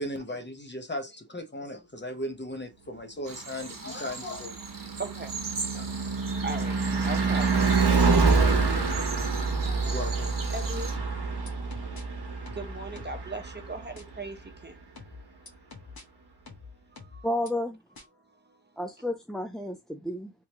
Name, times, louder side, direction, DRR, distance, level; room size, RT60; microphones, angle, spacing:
voice 1, 0.0-4.6 4.8-4.9 5.7-5.9 9.9-10.4, left 1 dB, 30° left, 0.9 m, -37 dB
sound 1, 3.2-11.0, right 4 dB, 55° right, 1.0 m, -40 dB
Car passing by / Truck / Engine, 3.9-14.2, right 4 dB, 85° right, 1.1 m, -27 dB
voice 2, 4.7-5.9 6.3-10.1 10.5-11.0 11.5-15.1 15.4-16.3 16.6-17.3 18.2-18.8, right 2 dB, 25° right, 0.8 m, -41 dB
sound 2, 11.0-12.0 12.5-13.3 14.0-14.1 15.0-16.0 16.5-17.5 18.0-18.1, left 4 dB, 65° left, 1.2 m, -46 dB
voice 3, 17.2-17.8 18.8-20.3, left 1 dB, ahead, 0.4 m, -31 dB
3.6 x 3.0 x 2.9 m
wide cardioid pair, 85°, 39 cm